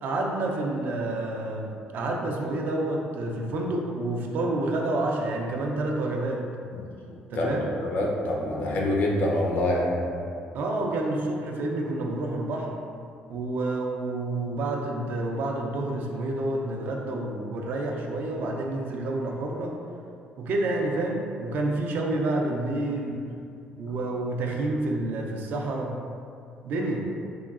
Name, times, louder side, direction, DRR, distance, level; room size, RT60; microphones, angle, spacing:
voice 1, 0.0-6.5 7.3-7.7 10.5-12.7 13.3-19.8 20.4-23.2 23.8-26.0 26.6-27.1, right 2 dB, 60° right, 0 dB, 0.3 m, -29 dB
voice 2, 7.8-9.9, left 1 dB, 60° left, -2 dB, 0.5 m, -25 dB
3.6 x 2.2 x 2.3 m, 2.4 s
cardioid pair, 150°, 4 cm